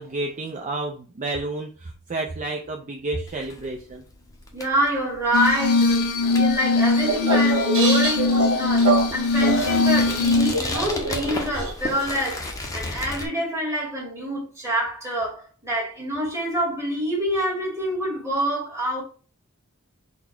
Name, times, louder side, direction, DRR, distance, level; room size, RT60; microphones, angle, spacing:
voice 1, 0.0-4.0, right 2 dB, 35° right, 0.5 m, -30 dB
sound 1, 3.3-13.3, left 2 dB, 15° left, 0.7 m, -35 dB
voice 2, 4.5-19.0, equal, 15° right, 1.6 m, -26 dB
Glass, 5.3-10.5, left 3 dB, 80° left, 0.5 m, -21 dB
sound 2, 6.8-12.3, right 3 dB, 65° right, 1.4 m, -27 dB
4.1 x 2.2 x 4.3 m
head